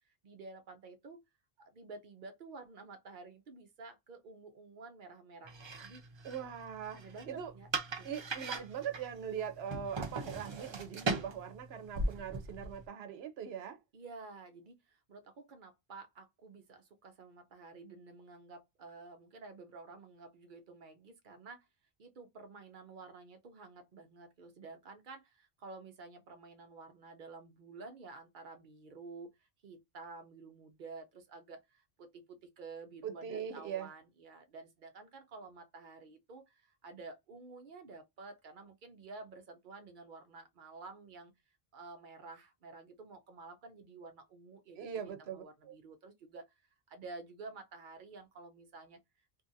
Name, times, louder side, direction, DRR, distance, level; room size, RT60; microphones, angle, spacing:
voice 1, 0.1-1.2 1.6-6.0 6.9-7.7 8.0-8.1 13.9-21.7 22.0-41.3 41.7-46.5 46.9-49.0, right 3 dB, 60° right, 0.8 m, -51 dB
sound 1, 5.5-12.9, right 3 dB, 40° right, 0.4 m, -40 dB
voice 2, 6.2-7.0 7.3-7.5 8.0-13.8 33.0-33.9 44.8-45.7, right 8 dB, 85° right, 0.9 m, -41 dB
2.7 x 2.5 x 2.6 m
omnidirectional pair, 1.0 m